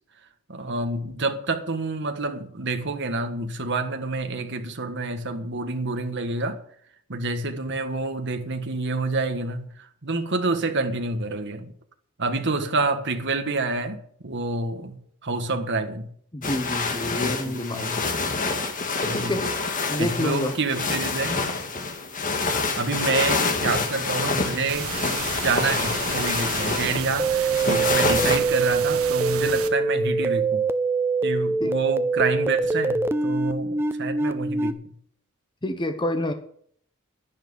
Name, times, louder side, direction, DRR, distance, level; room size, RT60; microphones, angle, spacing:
voice 1, 0.5-6.6 7.1-11.7 12.2-16.1 17.2-18.0 19.0-19.4 20.0-21.4 22.8-30.7 31.2-34.8, right 3 dB, 55° right, 1.7 m, -28 dB
voice 2, 16.3-18.0 19.1-19.4 19.9-20.5 31.6-31.7 35.6-36.3, left 1 dB, 20° left, 1.1 m, -28 dB
sound 1, 16.4-28.4, left 3 dB, 40° left, 1.9 m, -27 dB
sound 2, 24.7-29.7, right 7 dB, 75° right, 1.5 m, -33 dB
sound 3, 27.2-34.7, right 4 dB, 10° right, 0.6 m, -24 dB
11.0 x 10.5 x 7.0 m
head